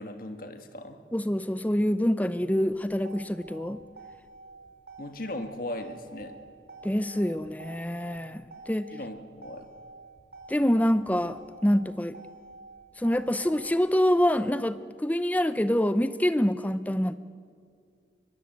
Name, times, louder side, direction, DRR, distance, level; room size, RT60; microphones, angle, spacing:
voice 1, 0.0-1.0 5.0-6.4 8.9-9.7, left 1 dB, 50° left, 7 dB, 1.7 m, -38 dB
voice 2, 1.1-3.8 6.8-8.9 10.5-12.2 13.0-17.1, equal, 10° left, 13 dB, 0.5 m, -26 dB
Motor vehicle (road), 2.6-14.6, right 3 dB, 65° right, 4.0 m, -49 dB
22.0 x 22.0 x 7.8 m, 2.2 s
head